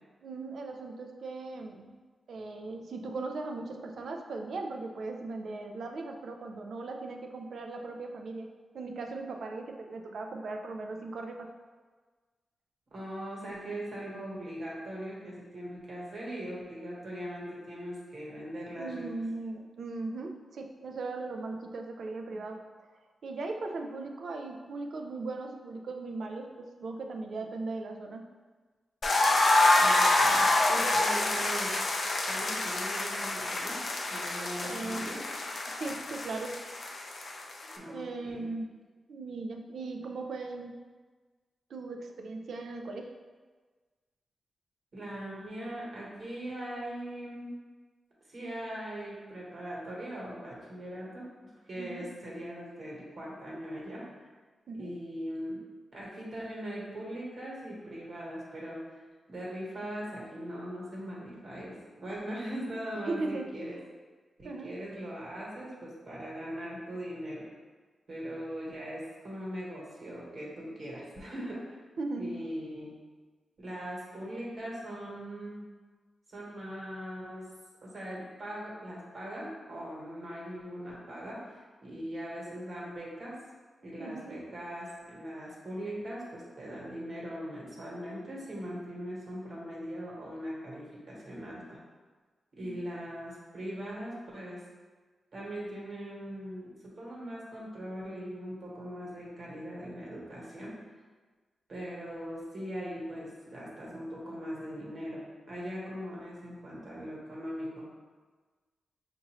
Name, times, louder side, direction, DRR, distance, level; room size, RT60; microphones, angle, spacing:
voice 1, 0.2-2.0 2.3-8.5 8.7-11.5 18.7-22.6 23.2-28.3 34.6-35.1 35.8-36.6 37.9-38.7 39.1-40.8 41.7-43.1 51.8-52.1 54.7-54.9 63.1-63.7 64.4-64.7 72.0-72.4 84.0-84.4 92.6-92.7, right 3 dB, 70° right, 3 dB, 0.4 m, -38 dB
voice 2, 12.9-19.1 22.3-22.4 29.7-31.8 32.2-33.8 34.1-35.2 37.7-38.5 44.9-47.5 48.3-54.0 54.8-55.6 55.9-63.8 64.4-67.4 68.1-71.7 72.1-72.9 73.6-75.7 76.3-77.5 77.8-83.4 83.8-91.8 92.6-94.6 95.3-100.8 101.7-107.9, equal, 50° right, -5 dB, 1.3 m, -40 dB
sound 1, 29.0-37.8, left 2 dB, 45° left, 0.4 m, -27 dB
6.0 x 2.6 x 3.0 m, 1.4 s
wide cardioid pair, 135°, 0 cm